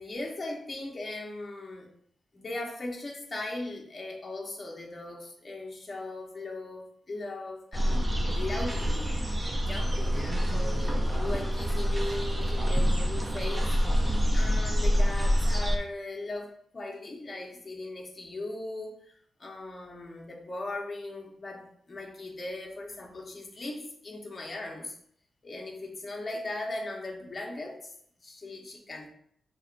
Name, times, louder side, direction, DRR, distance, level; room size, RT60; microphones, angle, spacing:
voice 1, 0.0-1.9 2.3-9.2 9.6-24.9 25.4-27.9 28.2-29.1, left 2 dB, 25° left, -1 dB, 0.8 m, -38 dB
sound 1, 7.7-15.8, equal, 15° right, 0.5 m, -26 dB
5.8 x 2.9 x 2.5 m, 0.68 s
wide cardioid pair, 160°, 0 cm